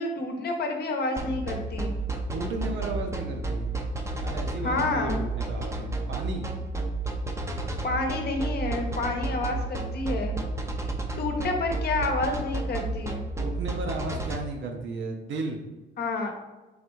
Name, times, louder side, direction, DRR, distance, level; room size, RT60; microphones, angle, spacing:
voice 1, 0.0-1.9 4.6-5.2 7.8-10.4 11.2-13.2 16.0-16.3, left 2 dB, 55° left, 3 dB, 0.8 m, -29 dB
sound 1, 1.2-14.4, right 2 dB, 15° right, 0.6 m, -31 dB
voice 2, 2.3-3.9 4.1-6.5 13.4-15.6, right 3 dB, 70° right, 3 dB, 0.8 m, -34 dB
4.0 x 3.2 x 3.1 m, 1.1 s
cardioid pair, 90°, 20 cm